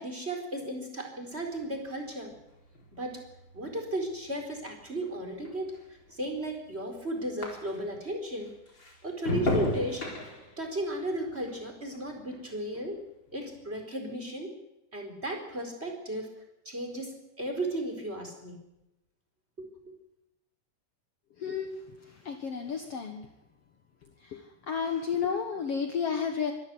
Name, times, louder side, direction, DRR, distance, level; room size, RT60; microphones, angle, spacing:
voice 1, 0.0-2.3 2.9-3.2 3.5-8.5 9.0-10.1 10.6-13.0 13.3-14.5 14.9-16.3 16.6-18.6 19.6-19.9, right 1 dB, 20° right, 3 dB, 4.5 m, -35 dB
sound 1, 1.3-8.1 8.4-13.0 13.3-13.8, left 2 dB, 35° left, 4.9 m, -38 dB
voice 2, 21.4-21.7 22.3-23.3 24.2-24.4 24.7-26.5, left 6 dB, 55° left, 5 dB, 2.3 m, -31 dB
24.5 x 13.5 x 9.5 m, 0.89 s
omnidirectional pair, 3.6 m